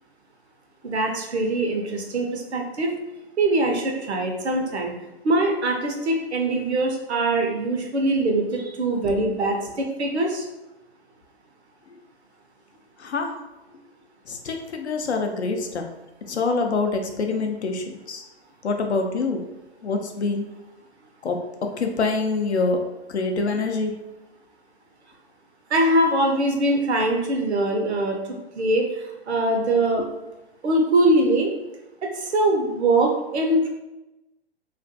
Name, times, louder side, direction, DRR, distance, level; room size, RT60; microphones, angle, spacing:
voice 1, 0.8-3.0 3.4-4.9 5.2-10.5 25.7-30.1 30.6-31.5 32.1-33.7, right 1 dB, 80° right, 2 dB, 0.7 m, -22 dB
voice 2, 13.0-13.3 14.3-15.9 16.3-18.2 18.6-19.4 19.8-20.4 21.2-22.8 23.1-23.9, left 3 dB, 90° left, 4 dB, 0.5 m, -25 dB
2.4 x 2.2 x 2.6 m, 1.0 s
figure-of-eight pair, 110°, 33 cm